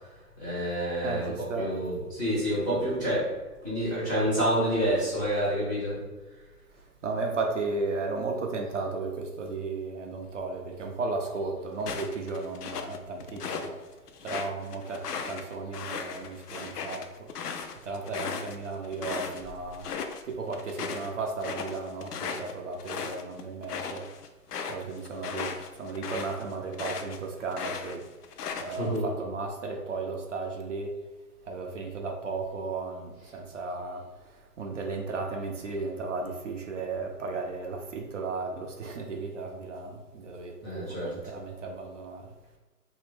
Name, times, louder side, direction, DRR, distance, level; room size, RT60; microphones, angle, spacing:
voice 1, 0.4-3.3 3.6-6.0 28.6-29.1 40.6-41.2, equal, 10° left, -10 dB, 0.6 m, -28 dB
voice 2, 1.0-1.8 6.7-13.9 14.2-17.3 17.8-19.9 20.2-24.1 24.7-28.0 28.6-30.9 31.4-42.3, right 3 dB, 50° right, 2 dB, 0.5 m, -35 dB
sound 1, 11.8-13.7 14.1-19.4 19.7-20.2 20.5-27.2 27.5-29.0, left 6 dB, 75° left, 0.5 m, -37 dB
2.9 x 2.6 x 3.2 m, 1.2 s
hypercardioid pair, 145°, 48 cm